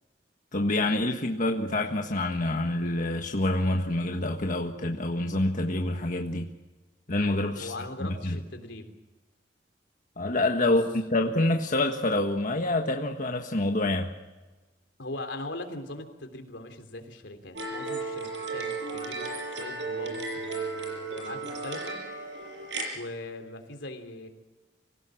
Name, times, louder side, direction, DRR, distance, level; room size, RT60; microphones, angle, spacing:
voice 1, 0.5-6.5 7.1-7.7 8.2-8.4 10.2-10.8 11.1-14.1, left 2 dB, 45° left, 2 dB, 1.6 m, -27 dB
voice 2, 7.6-8.9 10.6-10.8 15.0-19.2 19.5-22.0 22.9-24.3, left 2 dB, 80° left, 6 dB, 3.4 m, -40 dB
sound 1, 17.5-22.9, right 3 dB, 75° right, 6.1 m, -34 dB
25.5 x 17.0 x 7.8 m, 1.2 s
head